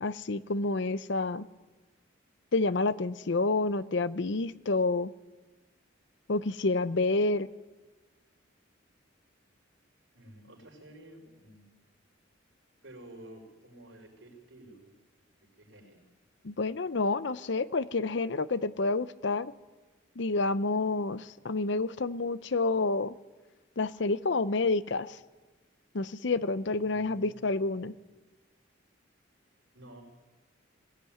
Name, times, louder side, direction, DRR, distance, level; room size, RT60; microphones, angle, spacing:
voice 1, 0.0-1.5 2.5-5.1 6.3-7.5 16.4-19.5 20.2-23.1 23.8-25.2 25.9-27.9, left 3 dB, 60° left, 15 dB, 0.6 m, -29 dB
voice 2, 10.1-11.7 12.8-14.9 15.3-16.0 26.8-27.4 29.7-30.0, right 1 dB, 75° right, 3 dB, 5.3 m, -51 dB
20.5 x 16.5 x 9.4 m, 1.2 s
head